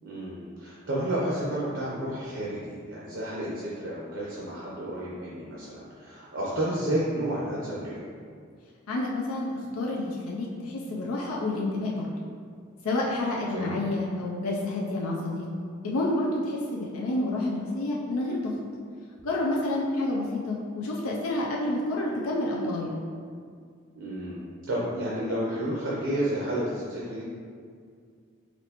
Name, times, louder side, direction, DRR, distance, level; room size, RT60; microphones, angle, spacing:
voice 1, 0.0-8.0 13.5-13.7 24.0-27.2, right 1 dB, 70° right, -6 dB, 0.7 m, -31 dB
voice 2, 8.9-12.1 12.8-15.5 15.8-18.5 19.2-23.0, left 2 dB, 85° left, -3 dB, 0.5 m, -29 dB
4.1 x 3.1 x 2.9 m, 2.2 s
head